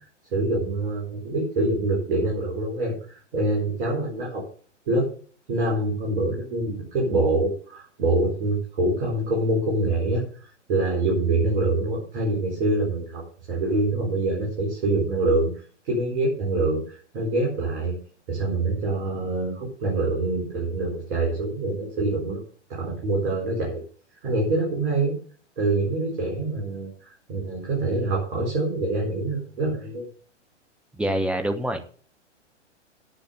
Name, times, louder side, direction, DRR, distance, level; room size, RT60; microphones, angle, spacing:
voice 1, 0.3-4.4 4.9-5.1 5.5-15.5 15.8-18.0 18.3-22.4 22.7-23.8 24.2-25.2 25.6-26.9 27.3-30.1, right 2 dB, 50° right, -2 dB, 4.5 m, -25 dB
voice 2, 31.0-31.9, right 1 dB, 5° right, 6 dB, 0.8 m, -26 dB
9.0 x 8.3 x 6.7 m, 0.44 s
figure-of-eight pair, 110°, 36 cm